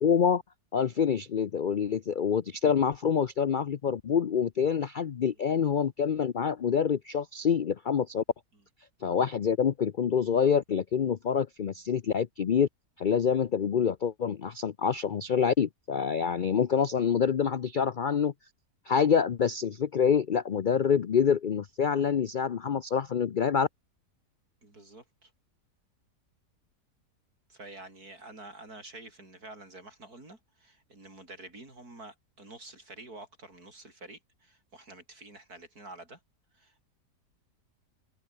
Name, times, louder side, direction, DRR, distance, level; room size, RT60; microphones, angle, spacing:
voice 1, 0.0-0.4 0.7-8.2 9.0-12.7 13.0-18.3 18.9-23.7, left 7 dB, 70° left, 0.4 m, -26 dB
voice 2, 24.6-25.3 27.5-36.2 36.5-36.9, right 2 dB, 65° right, 7.0 m, -48 dB
omnidirectional pair, 1.7 m